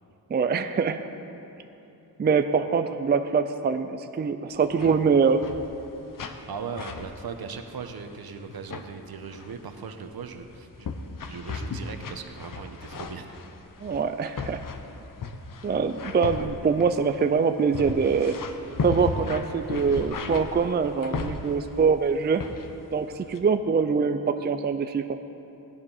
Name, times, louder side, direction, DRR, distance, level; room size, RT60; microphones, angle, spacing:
voice 1, 0.3-1.0 2.2-5.4 13.8-14.6 15.6-18.4 18.8-22.4 22.9-25.1, right 5 dB, 25° right, 8 dB, 0.4 m, -24 dB
sound 1, 4.5-5.0 5.2-5.9 6.1-6.5 6.8-8.2 8.5-8.9 9.3-9.6 10.2-21.9 22.4-22.8 23.1-23.4, left 4 dB, 55° left, 0.9 m, -36 dB
voice 2, 6.5-10.9 11.3-13.4, right 5 dB, 70° right, 6 dB, 1.0 m, -38 dB
17.0 x 9.5 x 5.6 m, 2.9 s
wide cardioid pair, 145°, 38 cm